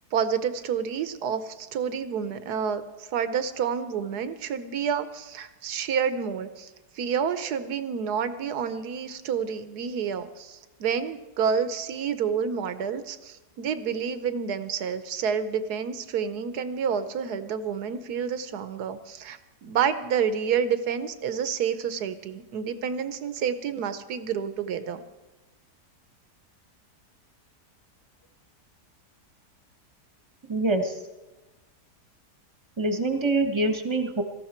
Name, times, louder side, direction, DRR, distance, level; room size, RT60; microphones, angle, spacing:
voice 1, 0.1-25.0, right 7 dB, 75° right, 11 dB, 1.4 m, -29 dB
voice 2, 30.5-31.0 32.8-34.2, right 2 dB, 20° right, 6 dB, 1.2 m, -25 dB
18.0 x 14.0 x 4.4 m, 1.1 s
omnidirectional pair, 1.7 m